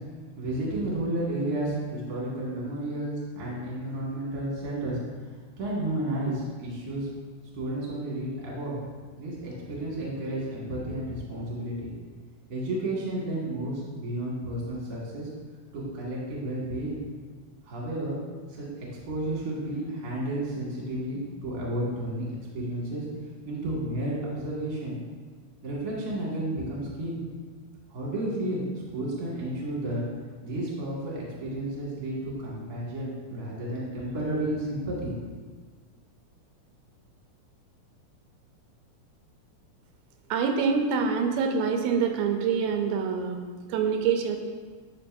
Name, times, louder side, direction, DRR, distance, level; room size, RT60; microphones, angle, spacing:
voice 1, 0.4-7.1 7.5-8.7 9.2-11.9 12.5-15.3 15.7-17.0 17.6-18.2 18.5-22.2 22.5-23.0 23.4-25.0 25.6-27.2 27.9-30.0 30.4-35.1, right 1 dB, 35° right, -5 dB, 1.6 m, -32 dB
voice 2, 40.3-43.4 43.7-44.4, right 6 dB, 90° right, 4 dB, 2.5 m, -25 dB
10.5 x 5.2 x 2.6 m, 1.5 s
omnidirectional pair, 4.2 m